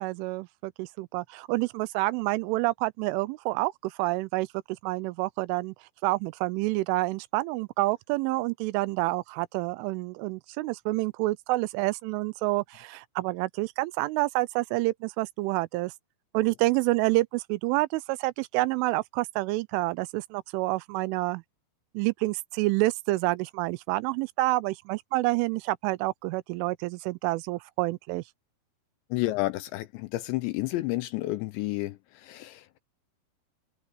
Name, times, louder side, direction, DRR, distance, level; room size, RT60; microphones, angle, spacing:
voice 1, 0.0-4.5 4.8-5.7 6.0-15.9 16.3-21.4 21.9-28.2, right 21 dB, 85° right, 3.0 m, -28 dB
voice 2, 29.1-32.8, left 18 dB, 80° left, 2.7 m, -31 dB
omnidirectional pair, 5.7 m